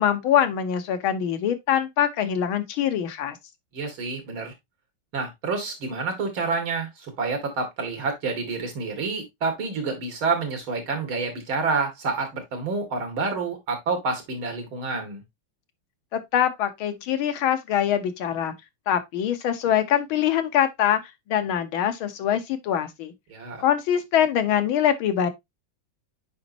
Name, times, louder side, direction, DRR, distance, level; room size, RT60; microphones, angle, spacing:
voice 1, 0.0-3.4 16.1-18.5 18.9-21.0 21.3-23.1 23.6-25.3, left 9 dB, 85° left, 1.9 m, -23 dB
voice 2, 3.7-4.5 5.1-15.2 23.3-23.6, right 4 dB, 90° right, 3.1 m, -28 dB
8.4 x 5.2 x 2.8 m
omnidirectional pair, 2.2 m